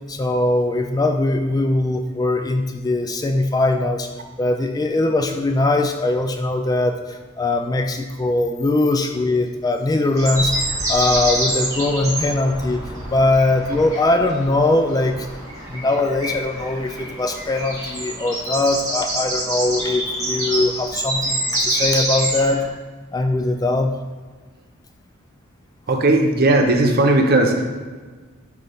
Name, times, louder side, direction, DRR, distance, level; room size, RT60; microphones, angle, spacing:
voice 1, 0.1-4.1 4.4-12.8 13.1-15.3 15.7-22.6 23.1-23.9, left 2 dB, 20° left, 6 dB, 0.3 m, -21 dB
sound 1, 10.2-22.7, right 1 dB, 15° right, 2.1 m, -26 dB
voice 2, 25.9-27.6, right 2 dB, 50° right, 3 dB, 0.9 m, -16 dB
9.7 x 3.9 x 3.5 m, 1.4 s
head